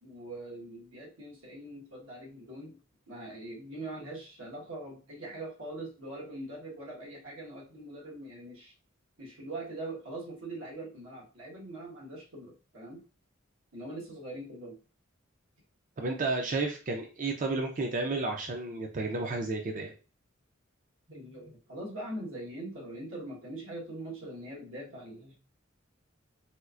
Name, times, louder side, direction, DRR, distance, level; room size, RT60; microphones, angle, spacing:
voice 1, 0.0-2.8 3.1-8.7 9.2-13.0 13.7-14.8 21.1-25.4, right 1 dB, 85° right, -3 dB, 1.3 m, -42 dB
voice 2, 16.0-19.9, right 3 dB, 40° right, 2 dB, 0.4 m, -32 dB
4.3 x 2.3 x 2.4 m, 0.35 s
head